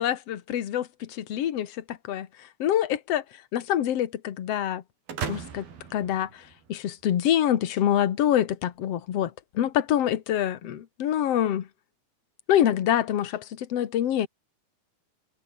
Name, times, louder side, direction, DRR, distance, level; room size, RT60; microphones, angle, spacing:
voice 1, 0.0-2.3 2.6-3.2 3.5-4.8 5.3-5.7 5.9-6.3 6.7-11.7 12.5-14.3, left 11 dB, 55° left, 2.2 m, -25 dB
sound 1, 5.1-7.0, right 6 dB, 85° right, 5.8 m, -37 dB
omnidirectional pair, 4.2 m